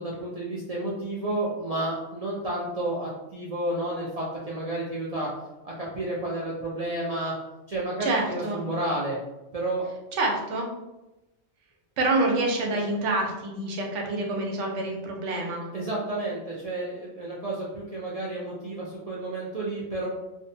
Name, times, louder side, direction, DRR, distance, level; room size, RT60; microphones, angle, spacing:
voice 1, 0.0-5.3 5.6-7.3 7.7-9.2 9.5-9.9 15.7-20.1, right 1 dB, 65° right, -6 dB, 0.3 m, -31 dB
voice 2, 8.0-8.6 10.1-10.7 12.0-15.6, right 2 dB, 85° right, 0 dB, 1.0 m, -27 dB
2.6 x 2.2 x 2.6 m, 0.99 s
omnidirectional pair, 1.2 m